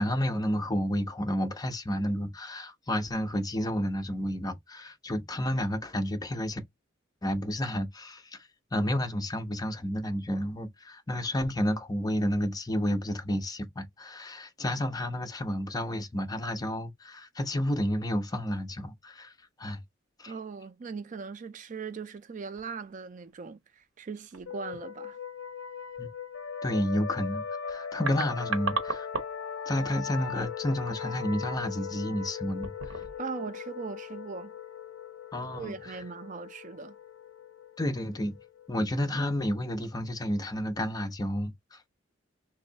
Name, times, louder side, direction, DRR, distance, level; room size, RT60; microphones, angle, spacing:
voice 1, 0.0-6.6 7.2-19.3 19.6-19.8 20.2-20.3 26.0-26.1 26.6-29.1 29.7-32.9 35.3-36.0 37.8-38.4 38.7-41.8, equal, 20° left, 0.6 m, -31 dB
voice 2, 20.3-25.2 33.2-34.5 35.5-37.0, right 5 dB, 40° right, 0.4 m, -39 dB
sound 1, 22.6-22.9 23.2-23.3 24.0-24.5 27.4-27.5 27.8-29.5 29.8-30.0 30.7-31.0 31.5-31.7 32.5-33.3 33.6-33.7, right 4 dB, 85° right, 0.9 m, -36 dB
sound 2, 24.5-39.8, left 7 dB, 75° left, 0.5 m, -39 dB
3.1 x 2.6 x 3.9 m
head